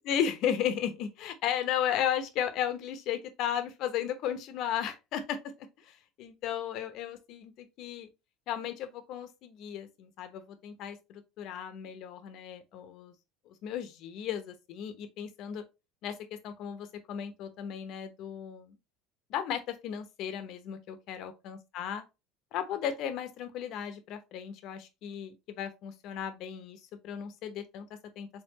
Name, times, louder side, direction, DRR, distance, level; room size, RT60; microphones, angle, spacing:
voice 1, 0.0-8.1 8.5-13.1 13.5-15.6 16.0-16.2 16.4-18.8 19.3-22.0 22.5-28.3, left 9 dB, 60° left, 0.9 m, -35 dB
4.5 x 3.6 x 2.9 m
supercardioid pair, 85°, 0 cm